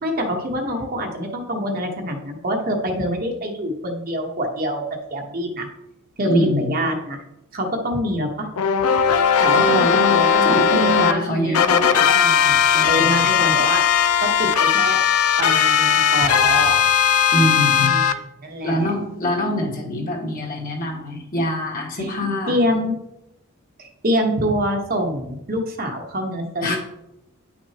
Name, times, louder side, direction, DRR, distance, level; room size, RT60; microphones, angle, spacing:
voice 1, 0.0-4.8 5.1-5.7 6.2-7.2 7.5-8.5 9.4-12.1 12.8-13.8 14.2-15.0 15.4-16.9 17.7-18.0 18.4-18.9 22.0-22.1 22.5-23.0 23.8-26.8, equal, 40° right, 2 dB, 1.1 m, -25 dB
voice 2, 6.3-6.7 9.6-13.2 17.3-18.0 18.6-22.6 26.6-26.8, left 1 dB, 40° left, -1 dB, 1.6 m, -24 dB
sound 1, 8.6-11.1 11.5-18.1, left 8 dB, 80° left, 0.5 m, -18 dB
10.0 x 6.1 x 2.9 m, 0.88 s
head